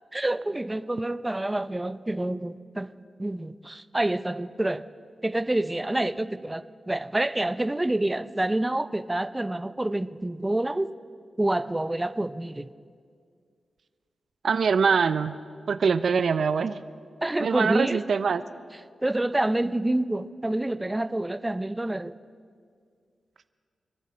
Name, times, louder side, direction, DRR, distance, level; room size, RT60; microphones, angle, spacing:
voice 1, 0.1-2.9 3.2-4.9 5.2-10.9 11.4-12.7 17.2-18.0 19.0-22.1, right 1 dB, 20° right, 13 dB, 0.5 m, -27 dB
voice 2, 14.4-15.4 15.7-16.8 17.4-18.4, right 5 dB, 75° right, 13 dB, 0.4 m, -23 dB
26.5 x 10.0 x 4.3 m, 2.1 s
cardioid pair, 60°, 0 cm